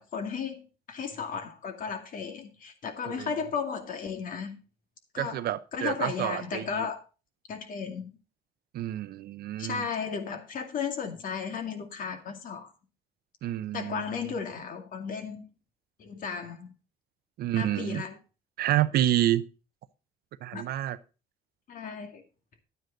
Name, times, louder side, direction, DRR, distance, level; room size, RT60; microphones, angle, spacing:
voice 1, 0.0-4.6 5.1-7.0 7.5-8.2 9.6-12.7 13.7-15.5 16.0-16.7 17.5-18.2 20.5-20.6 21.7-22.2, left 6 dB, 55° left, 6 dB, 2.3 m, -35 dB
voice 2, 5.2-6.9 8.7-9.9 13.4-14.0 17.4-18.0 18.6-19.4 20.4-21.0, right 13 dB, 65° right, 15 dB, 0.8 m, -28 dB
10.5 x 9.3 x 3.9 m, 0.32 s
cardioid pair, 110°, 17 cm